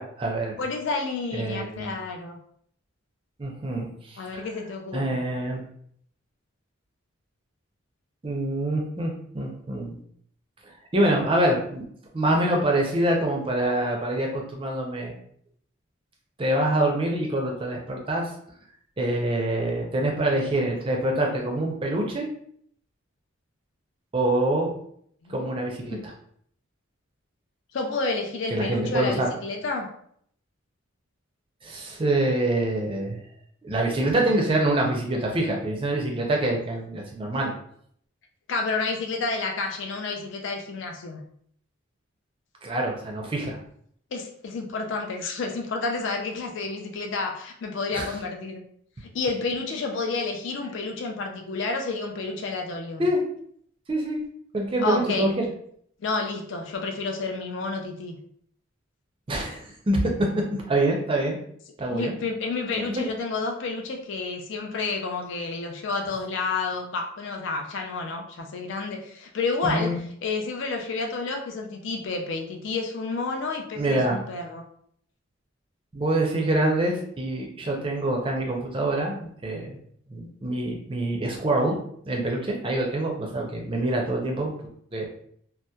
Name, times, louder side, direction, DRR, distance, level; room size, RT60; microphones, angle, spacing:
voice 1, 0.0-0.5 1.3-1.9 3.4-4.5 4.9-5.6 8.2-10.0 10.9-11.8 12.1-15.1 16.4-18.3 19.0-22.3 24.1-24.7 25.3-26.1 28.5-29.3 31.6-33.2 33.6-37.5 42.6-43.6 47.9-48.1 53.0-53.2 53.9-54.2 54.5-55.4 59.3-61.4 61.8-62.1 62.9-63.1 69.6-70.0 73.8-74.2 75.9-79.8 80.1-81.8 82.1-84.5 84.9-85.1, right 1 dB, 25° right, 0 dB, 0.4 m, -25 dB
voice 2, 0.6-2.4 4.2-5.2 25.3-25.4 25.9-26.1 27.7-29.9 38.5-41.2 44.1-48.6 49.1-53.1 54.8-55.3 56.0-58.2 61.9-69.9 70.2-74.6, left 3 dB, 60° left, 2 dB, 0.4 m, -30 dB
2.7 x 2.0 x 2.2 m, 0.65 s
head